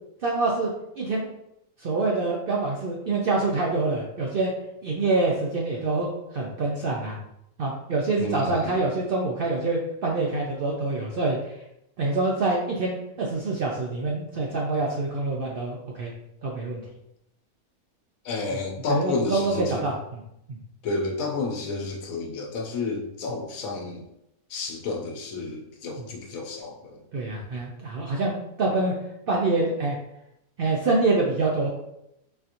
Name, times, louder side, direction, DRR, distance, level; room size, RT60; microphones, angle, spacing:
voice 1, 0.2-0.7 1.0-1.3 1.8-4.5 4.8-7.2 7.6-11.5 12.0-16.1 16.4-16.8 18.9-20.2 20.5-20.6 26.0-26.1 27.1-28.9 29.3-30.0 30.6-31.7, right 3 dB, 80° right, -2 dB, 0.5 m, -26 dB
voice 2, 8.2-8.8 18.2-19.9 20.8-24.0 24.5-27.0, left 3 dB, 75° left, 1 dB, 1.1 m, -31 dB
4.1 x 2.8 x 2.5 m, 0.81 s
omnidirectional pair, 1.5 m